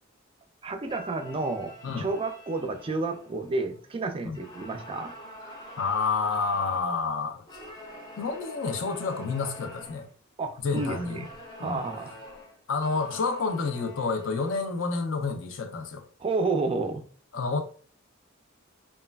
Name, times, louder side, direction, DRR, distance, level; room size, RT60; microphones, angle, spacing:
voice 1, 0.6-5.1 10.4-11.2 11.6-12.1 16.2-17.0, right 3 dB, 25° right, 0.3 m, -30 dB
sound 1, 0.8-3.9 4.3-6.9 7.5-10.1 10.7-15.0, equal, 20° left, 0.6 m, -46 dB
voice 2, 5.5-7.4 8.2-10.1 10.6-11.2 11.6-11.8 12.7-16.0 17.3-17.6, left 4 dB, 70° left, 0.5 m, -29 dB
3.1 x 2.2 x 2.2 m
head